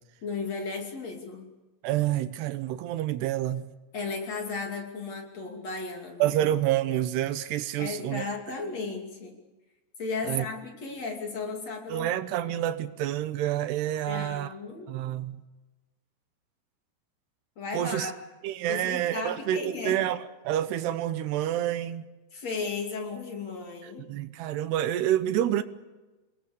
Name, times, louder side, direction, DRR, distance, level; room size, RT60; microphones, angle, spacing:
voice 1, 0.2-1.5 3.9-6.4 7.8-9.4 10.0-12.1 14.1-14.9 17.6-18.1 18.7-20.0 22.3-24.1, left 4 dB, 45° left, 3.6 m, -35 dB
voice 2, 1.8-3.7 6.2-8.2 10.2-10.4 11.9-14.5 14.9-15.4 17.7-18.1 18.4-22.0 24.1-25.6, right 12 dB, 80° right, 2.9 m, -28 dB
28.0 x 21.0 x 6.9 m
omnidirectional pair, 4.8 m